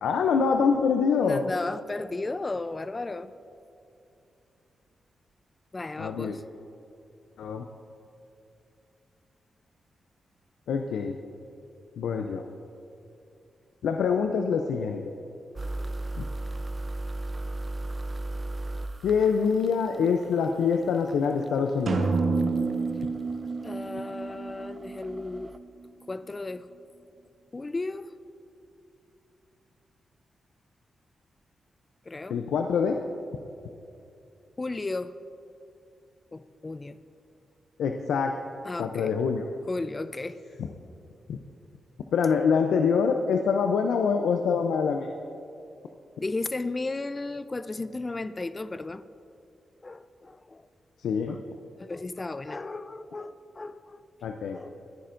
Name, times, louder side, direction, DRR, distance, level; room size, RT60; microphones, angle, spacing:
voice 1, 0.0-1.4 6.0-6.3 7.4-7.6 10.7-11.2 12.0-12.4 13.8-15.1 16.2-16.3 19.0-22.1 32.3-33.0 37.8-38.3 38.8-39.4 41.3-41.4 42.1-45.1 51.0-51.4 54.2-54.6, left 6 dB, 80° left, 5 dB, 0.5 m, -25 dB
voice 2, 1.2-3.3 5.7-6.4 23.6-25.5 26.1-26.7 27.5-28.1 32.1-32.4 34.6-35.1 36.3-37.0 38.6-39.1 39.7-40.4 46.2-49.0 49.8-50.6 51.3-51.4 51.8-54.0 54.5-54.8, left 2 dB, 35° left, 13 dB, 0.5 m, -34 dB
sound 1, 15.6-25.6, right 2 dB, 35° right, 0.5 m, -37 dB
sound 2, 21.9-25.7, right 4 dB, 65° right, 0.9 m, -29 dB
25.0 x 10.5 x 2.6 m, 2.6 s
supercardioid pair, 45°, 0 cm